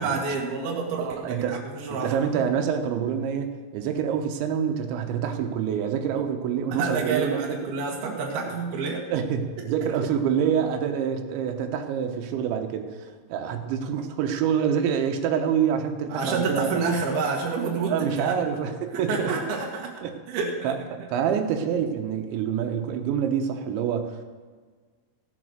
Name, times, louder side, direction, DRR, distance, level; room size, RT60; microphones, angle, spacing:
voice 1, 0.0-2.5 6.7-9.0 16.1-18.4 18.9-19.9 20.3-20.8, right 4 dB, 65° right, -2 dB, 3.4 m, -28 dB
voice 2, 1.0-1.6 1.9-7.4 9.1-16.7 17.9-19.3 20.0-20.2 20.6-24.2, right 8 dB, 85° right, 4 dB, 3.4 m, -26 dB
16.5 x 7.7 x 6.5 m, 1.5 s
omnidirectional pair, 5.1 m